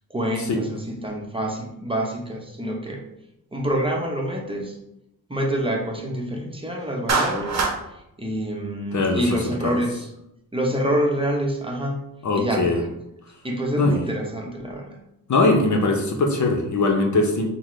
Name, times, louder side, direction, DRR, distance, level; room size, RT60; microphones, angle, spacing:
voice 1, 0.1-3.0 3.5-4.8 5.3-7.7 8.2-10.1 10.5-12.0 12.3-12.9 13.4-15.0, right 1 dB, 15° right, 0 dB, 0.9 m, -26 dB
Clapping, 7.1-7.8, right 4 dB, 45° right, 0.9 m, -22 dB
voice 2, 8.9-9.8 12.2-12.8 13.8-14.0 15.3-17.5, left 2 dB, 50° left, 2 dB, 0.8 m, -21 dB
5.6 x 2.2 x 3.2 m, 0.83 s
cardioid pair, 65°, 36 cm